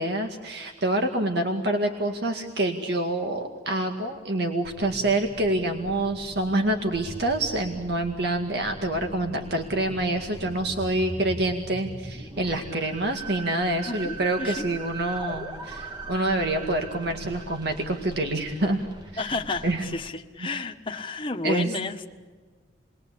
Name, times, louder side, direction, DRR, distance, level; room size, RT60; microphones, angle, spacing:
voice 1, 0.0-18.8 19.1-19.2 19.6-19.8 21.4-21.7, right 1 dB, 60° right, 4 dB, 2.1 m, -27 dB
sound 1, 4.6-20.1, right 2 dB, 25° right, 2.1 m, -40 dB
voice 2, 13.9-14.6 19.2-22.1, left 3 dB, 25° left, 3 dB, 1.5 m, -32 dB
29.5 x 21.5 x 8.5 m, 1.5 s
head